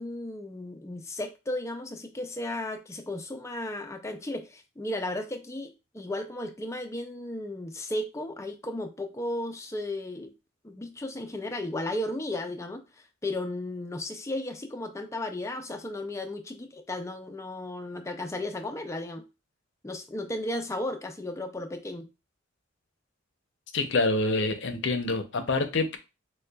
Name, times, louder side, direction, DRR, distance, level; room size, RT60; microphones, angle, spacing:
voice 1, 0.0-10.3 10.6-19.2 19.8-22.1, left 1 dB, 15° left, 0.4 m, -35 dB
voice 2, 23.7-26.0, left 3 dB, 60° left, 0.6 m, -26 dB
6.4 x 2.3 x 2.3 m
head